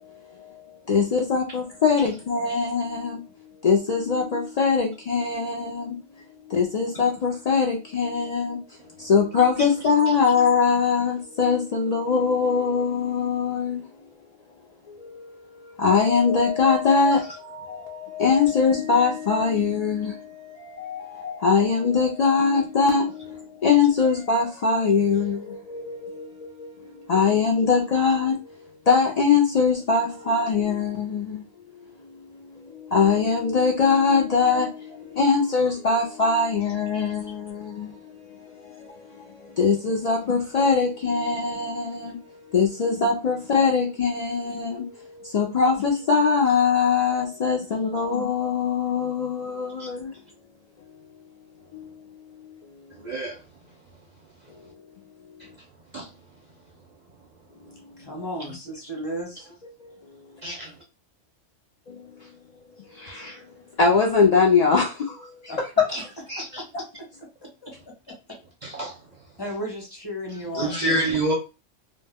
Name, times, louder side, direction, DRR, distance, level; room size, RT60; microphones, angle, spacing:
voice 1, 0.9-3.2 3.6-6.0 6.5-8.6 9.0-13.8 14.9-31.4 32.4-50.1 51.7-51.9 58.2-58.3 59.6-59.7 61.9-62.0 62.9-63.4 63.8-66.1, left 5 dB, 90° left, 0.3 m, -22 dB
voice 2, 52.9-53.4 55.9-56.1 60.4-60.7 65.9-66.0 66.3-66.6 68.6-69.0 70.3-71.3, right 1 dB, 50° right, 0.5 m, -28 dB
voice 3, 58.0-59.5 65.5-65.6 66.8-67.1 67.6-67.7 68.1-68.4 69.4-70.9, equal, 25° left, 0.8 m, -34 dB
2.2 x 2.1 x 3.3 m
omnidirectional pair, 1.3 m